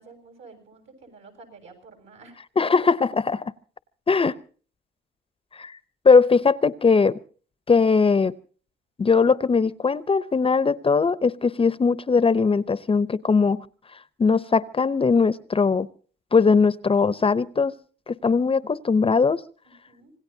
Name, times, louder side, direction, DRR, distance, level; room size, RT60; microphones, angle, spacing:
voice 1, 0.0-2.4 19.7-20.1, right 4 dB, 75° right, 4 dB, 7.5 m, -49 dB
voice 2, 2.6-3.5 4.1-4.4 5.5-5.8 6.0-7.2 7.7-8.4 9.0-13.6 14.2-15.9 16.3-17.7 18.1-19.4, left 5 dB, 30° left, 17 dB, 0.7 m, -20 dB
26.5 x 19.0 x 2.7 m, 0.42 s
cardioid pair, 90°, 20 cm